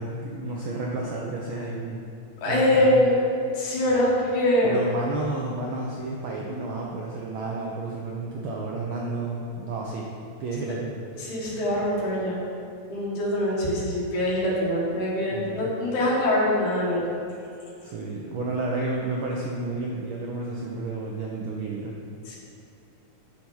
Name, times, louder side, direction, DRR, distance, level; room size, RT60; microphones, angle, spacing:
voice 1, 0.0-2.1 2.5-3.0 4.6-10.1 10.4-11.0 15.3-15.7 17.8-22.0, right 2 dB, 85° right, -2 dB, 1.1 m, -31 dB
voice 2, 2.4-3.2 3.5-4.8 11.2-12.4 12.9-17.1 22.3-22.4, left 1 dB, 85° left, -6 dB, 2.9 m, -23 dB
7.5 x 6.5 x 5.5 m, 2.6 s
omnidirectional pair, 3.4 m